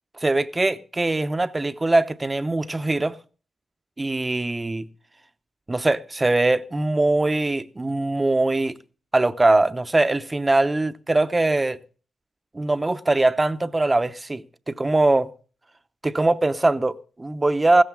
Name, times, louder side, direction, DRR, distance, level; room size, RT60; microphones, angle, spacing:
voice 1, 0.2-3.2 4.0-4.9 5.7-8.8 9.1-11.8 12.5-15.3 16.0-17.8, right 2 dB, 25° right, 0.8 m, -22 dB
15.5 x 14.0 x 3.6 m
cardioid pair, 70°, 0 cm